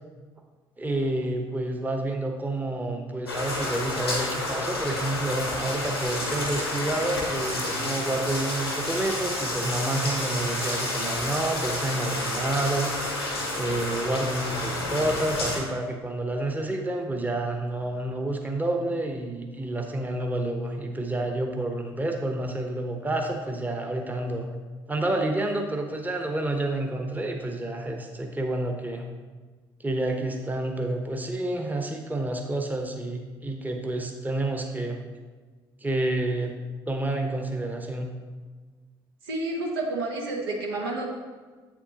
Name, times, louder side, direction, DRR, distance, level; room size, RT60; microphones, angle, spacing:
voice 1, 0.8-24.5 24.9-29.0 29.8-35.0 35.8-36.5 36.9-38.1, right 2 dB, 15° right, 3 dB, 0.9 m, -29 dB
sound 1, 3.3-15.6, left 2 dB, 85° left, 1.0 m, -30 dB
voice 2, 39.2-41.1, right 2 dB, 70° right, 0 dB, 1.0 m, -30 dB
8.0 x 7.0 x 2.9 m, 1.4 s
figure-of-eight pair, 50°, 13 cm